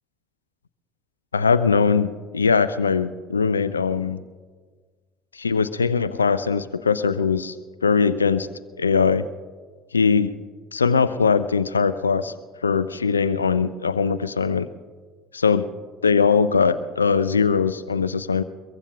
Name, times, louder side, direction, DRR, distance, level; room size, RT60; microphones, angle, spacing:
voice 1, 1.3-4.2 5.3-7.6 7.8-8.5 8.8-9.3 9.9-10.3 10.7-12.3 12.6-14.7 15.3-15.7 16.0-18.4, left 5 dB, 85° left, 15 dB, 0.3 m, -21 dB
22.5 x 22.0 x 2.2 m, 1.5 s
figure-of-eight pair, 60°, 0 cm